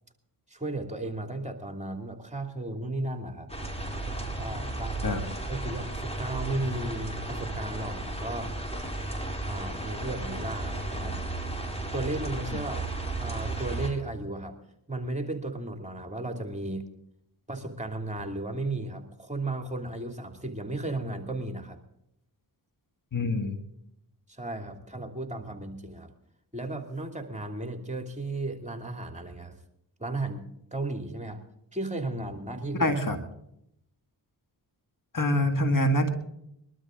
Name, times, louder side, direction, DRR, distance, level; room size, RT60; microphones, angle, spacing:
voice 1, 0.5-3.5 4.3-5.2 5.5-8.5 9.4-11.2 11.9-12.9 13.2-14.6 14.9-16.8 17.5-21.8 24.3-26.1 26.5-29.6 30.0-31.4 31.7-32.9, right 2 dB, 15° right, 4 dB, 2.8 m, -34 dB
sound 1, 3.5-13.9, right 2 dB, 10° left, 4.3 m, -34 dB
voice 2, 23.1-23.6 32.8-33.2 35.1-36.1, left 1 dB, 40° left, 6 dB, 2.0 m, -25 dB
22.0 x 12.5 x 3.8 m, 0.77 s
supercardioid pair, 45°, 47 cm